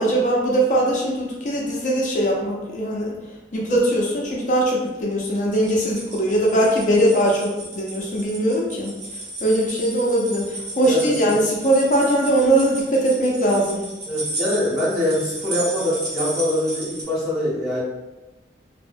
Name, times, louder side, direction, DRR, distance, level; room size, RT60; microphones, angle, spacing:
voice 1, 0.0-3.1 3.5-8.9 9.4-13.8, right 1 dB, 45° left, -3 dB, 0.5 m, -20 dB
sound 1, 5.4-17.0, right 1 dB, 70° right, 0.7 m, -34 dB
voice 2, 10.8-11.4 14.0-17.8, left 1 dB, 5° right, -12 dB, 1.0 m, -23 dB
2.6 x 2.0 x 2.5 m, 1.1 s
head